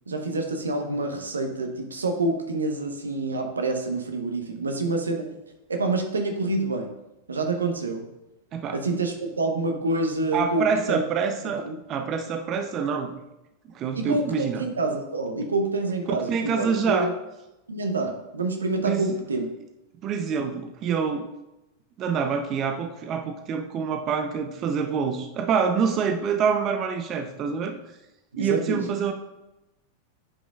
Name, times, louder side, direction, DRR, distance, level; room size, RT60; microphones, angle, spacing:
voice 1, 0.1-5.3 5.7-6.9 7.3-8.1 8.7-11.0 11.4-11.8 13.9-14.2 14.6-17.1 17.7-19.5 28.3-28.8, right 2 dB, 85° right, 4 dB, 0.8 m, -27 dB
voice 2, 10.3-13.1 13.7-14.6 16.1-17.1 18.8-19.0 20.0-21.3 22.0-27.8 28.4-29.1, right 6 dB, 40° right, 6 dB, 0.6 m, -26 dB
8.6 x 5.1 x 2.4 m, 0.93 s
hypercardioid pair, 95°, 0 cm